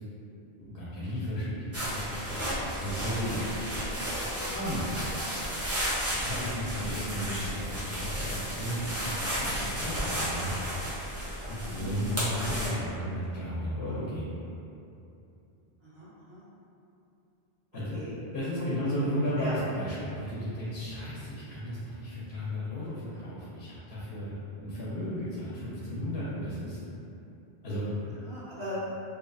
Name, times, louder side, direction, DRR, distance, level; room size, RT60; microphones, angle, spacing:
voice 1, 0.6-2.4 2.7-3.5 4.5-5.2 6.1-10.6 11.5-14.2 17.7-18.0 18.3-26.8 27.6-28.2, equal, 70° left, -9 dB, 0.8 m, -34 dB
sound 1, 1.7-12.7, equal, 25° right, 0.3 m, -33 dB
voice 2, 15.8-16.4 17.9-18.1 18.6-19.1 19.4-19.6 28.3-28.9, equal, 70° right, -12 dB, 1.2 m, -38 dB
2.6 x 2.3 x 2.2 m, 2.8 s
omnidirectional pair, 1.0 m